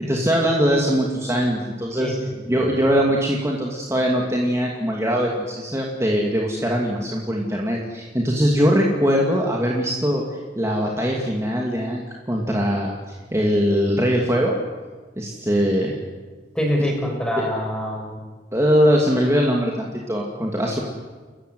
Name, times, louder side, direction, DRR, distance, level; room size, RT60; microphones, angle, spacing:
voice 1, 0.0-2.1 2.5-14.6 15.2-16.0 18.5-20.8, equal, 15° right, -1 dB, 2.7 m, -21 dB
voice 2, 2.0-2.7 15.6-15.7 16.5-18.2, left 1 dB, 5° left, 2 dB, 5.5 m, -26 dB
30.0 x 15.0 x 9.5 m, 1.4 s
head